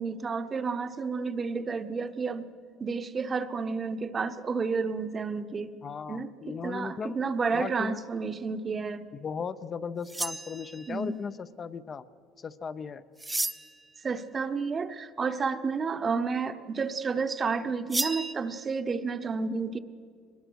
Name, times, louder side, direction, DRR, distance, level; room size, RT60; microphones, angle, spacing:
voice 1, 0.0-2.5 2.8-5.7 6.1-9.1 10.9-11.1 14.0-19.8, right 5 dB, 30° right, 11 dB, 0.9 m, -31 dB
voice 2, 5.8-7.2 7.5-8.0 9.1-12.0 12.4-13.0, left 6 dB, 35° left, 12 dB, 0.6 m, -37 dB
sound 1, 10.1-11.0 13.2-13.9 17.9-18.3, right 2 dB, 10° right, 0.6 m, -32 dB
22.5 x 20.5 x 6.3 m, 2.1 s
cardioid pair, 115°, 0 cm